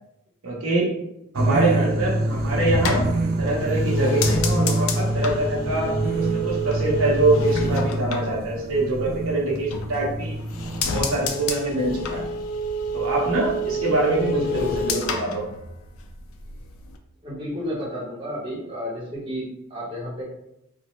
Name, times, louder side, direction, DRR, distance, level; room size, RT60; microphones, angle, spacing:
voice 1, 0.4-0.9 1.3-3.1 3.4-10.4 10.9-12.3 12.9-15.4, right 2 dB, 70° right, -3 dB, 0.7 m, -24 dB
sound 1, 1.3-12.3, right 1 dB, 45° right, 0.3 m, -26 dB
voice 2, 1.5-2.0 14.2-15.1 17.2-20.2, equal, 25° right, -6 dB, 0.8 m, -32 dB
sound 2, 2.3-9.1 9.5-10.2 10.5-16.2 16.5-17.0, equal, 70° left, 0.3 m, -29 dB
3.0 x 2.0 x 3.0 m, 0.83 s
head